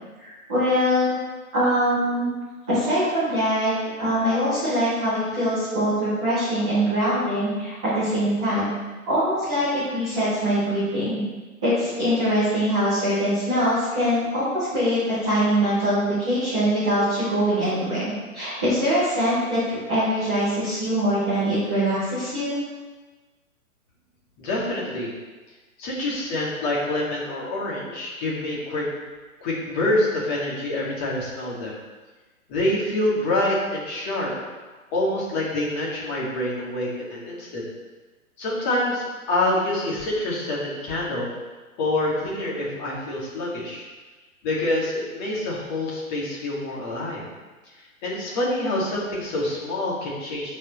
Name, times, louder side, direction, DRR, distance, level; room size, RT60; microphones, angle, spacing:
voice 1, 0.2-1.1 1.5-2.3 2.7-3.7 4.0-8.7 9.1-11.2 11.6-22.5, equal, 5° right, -17 dB, 0.4 m, -23 dB
voice 2, 24.4-25.1 25.8-28.8 29.4-31.8 32.5-34.3 34.9-37.6 38.4-41.3 41.8-43.9 44.4-47.3 48.0-50.6, left 1 dB, 30° left, -5 dB, 2.4 m, -26 dB
12.5 x 5.1 x 3.3 m, 1.3 s
hypercardioid pair, 150°, 43 cm